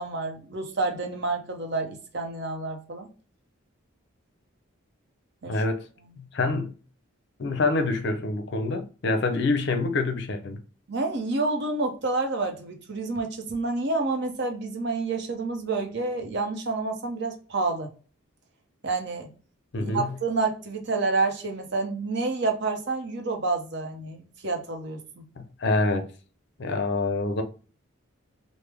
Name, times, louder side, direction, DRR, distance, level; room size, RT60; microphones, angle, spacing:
voice 1, 0.0-3.1 5.4-5.6 10.9-17.9 18.8-19.3 19.8-25.2, right 3 dB, 55° right, 0.7 m, -29 dB
voice 2, 5.5-5.9 6.2-6.7 7.4-10.6 19.7-20.1 25.4-26.1 26.6-27.4, left 3 dB, 55° left, 0.5 m, -26 dB
3.2 x 2.0 x 3.3 m
head